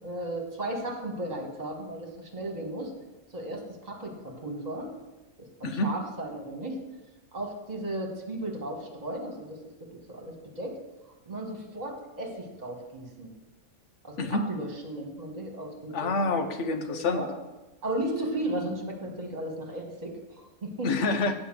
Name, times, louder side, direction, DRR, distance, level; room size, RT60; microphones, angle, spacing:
voice 1, 0.0-2.9 3.3-4.9 5.4-6.8 7.3-10.8 11.3-13.3 14.0-16.1 16.7-17.3 17.8-20.9, right 1 dB, 35° right, 1 dB, 1.8 m, -35 dB
voice 2, 14.2-14.5 15.9-17.2 20.8-21.3, left 3 dB, 75° left, 7 dB, 1.1 m, -27 dB
8.5 x 5.1 x 7.6 m, 1.1 s
omnidirectional pair, 1.3 m